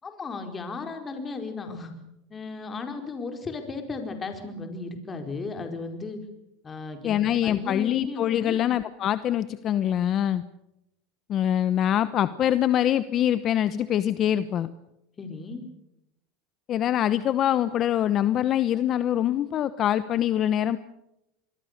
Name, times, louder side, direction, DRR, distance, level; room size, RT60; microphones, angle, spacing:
voice 1, 0.0-1.9 2.3-6.2 6.6-8.6 15.2-15.6, left 4 dB, 25° left, 5 dB, 4.6 m, -35 dB
voice 2, 7.0-10.4 11.3-14.7 16.7-20.8, left 11 dB, 45° left, 14 dB, 1.0 m, -24 dB
26.5 x 22.0 x 6.7 m, 0.85 s
supercardioid pair, 115°, 0 cm